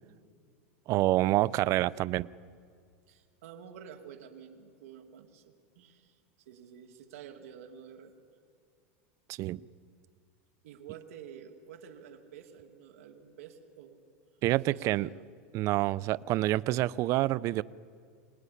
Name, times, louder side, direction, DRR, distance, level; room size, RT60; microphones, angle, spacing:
voice 1, 0.9-2.3 9.3-9.6 14.4-15.1 15.5-17.6, right 16 dB, 45° right, 20 dB, 0.5 m, -27 dB
voice 2, 3.1-6.2 6.5-8.1 10.6-14.0 14.7-15.3, right 8 dB, 80° right, 3 dB, 2.4 m, -49 dB
25.0 x 19.0 x 9.9 m, 2.2 s
supercardioid pair, 130°, 8 cm